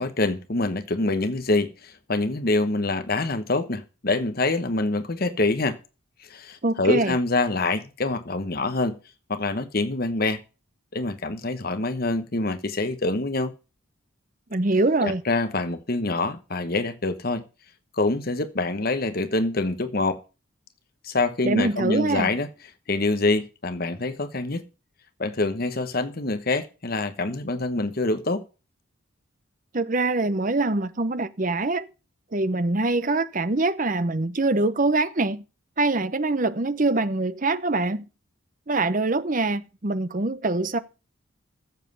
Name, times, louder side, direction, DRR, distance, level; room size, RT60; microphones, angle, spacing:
voice 1, 0.0-5.8 6.3-9.0 9.3-10.4 10.9-13.5 15.0-17.4 17.9-20.2 21.0-22.5 22.9-24.6 25.2-28.4, left 2 dB, 45° left, 1.1 m, -25 dB
voice 2, 6.6-7.2 14.5-15.2 21.4-22.3 29.7-31.9 32.3-35.4 35.8-38.0 38.7-40.8, right 2 dB, 40° right, 0.8 m, -24 dB
15.0 x 7.6 x 5.4 m
head